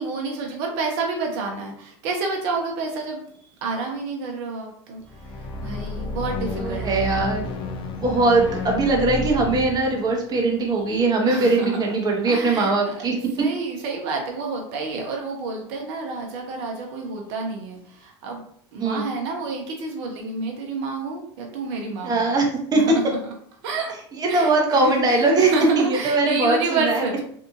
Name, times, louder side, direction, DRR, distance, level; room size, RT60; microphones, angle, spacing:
voice 1, 0.0-3.2 3.6-5.0 5.6-7.3 11.3-11.8 12.3-18.4 18.7-22.2 22.7-23.3 23.6-23.9 24.3-27.2, right 3 dB, 65° right, 1 dB, 0.7 m, -29 dB
sound 1, 5.0-11.4, left 2 dB, 35° left, 0.5 m, -31 dB
voice 2, 6.6-7.4 8.0-13.5 18.8-19.1 22.0-22.8 24.2-25.5 25.8-27.0, right 3 dB, 30° right, 0 dB, 0.8 m, -21 dB
2.7 x 2.5 x 2.4 m, 0.63 s
hypercardioid pair, 95°, 14 cm